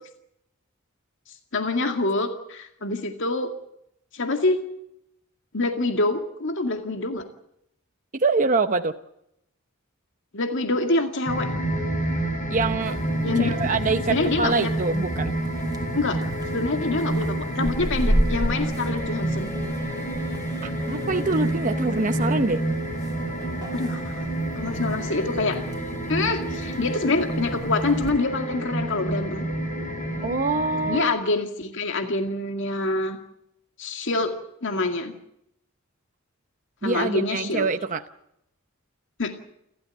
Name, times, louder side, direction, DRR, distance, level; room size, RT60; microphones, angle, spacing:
voice 1, 1.5-3.5 4.1-4.6 5.5-7.3 10.3-11.5 13.2-13.5 14.1-14.7 15.9-16.2 16.5-19.5 23.7-24.2 24.6-25.6 26.1-29.5 30.9-33.2 33.8-34.3 34.6-35.1 36.8-37.7 39.2-39.3, left 2 dB, 60° left, 5 dB, 2.2 m, -26 dB
voice 2, 8.1-8.9 12.5-13.0 13.4-15.3 20.6-22.6 30.2-31.2 36.8-38.0, right 3 dB, 40° right, 7 dB, 0.8 m, -25 dB
sound 1, 11.3-31.0, right 1 dB, 40° left, 3.3 m, -28 dB
sound 2, 12.8-28.1, equal, 20° right, 2.8 m, -34 dB
sound 3, 18.3-30.2, right 3 dB, 10° left, 4.2 m, -43 dB
29.5 x 13.5 x 9.1 m, 0.80 s
head